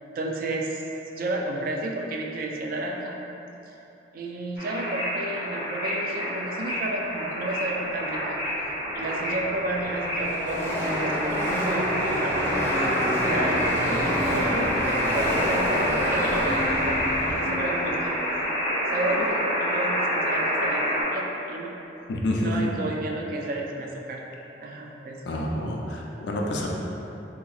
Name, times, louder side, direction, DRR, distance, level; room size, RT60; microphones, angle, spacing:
voice 1, 0.1-0.8 1.1-3.2 3.7-3.8 4.1-12.4 12.7-13.6 14.0-18.5 18.9-21.8 22.3-24.2 24.6-25.2, right 2 dB, 50° right, 0 dB, 0.4 m, -32 dB
sound 1, 4.6-21.0, equal, 90° right, 1.4 m, -28 dB
Car passing by / Race car auto racing, 8.6-8.7 8.8-19.4, equal, 15° left, 0.5 m, -29 dB
voice 2, 22.1-22.5 25.3-26.7, left 1 dB, 65° left, -1 dB, 0.4 m, -28 dB
3.9 x 2.8 x 2.4 m, 3.0 s
head